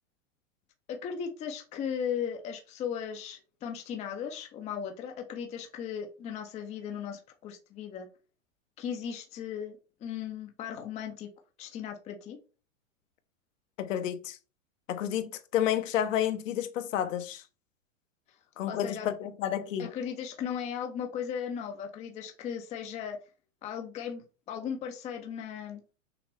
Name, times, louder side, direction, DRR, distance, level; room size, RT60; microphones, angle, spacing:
voice 1, 0.9-8.1 8.8-11.3 11.6-12.4 18.7-19.1 19.8-23.2 23.6-25.8, left 8 dB, 15° left, 0.5 m, -37 dB
voice 2, 13.8-14.4 14.9-17.4 18.6-19.9, left 10 dB, 70° left, 0.9 m, -30 dB
5.9 x 2.1 x 3.3 m
hypercardioid pair, 130°, 40 cm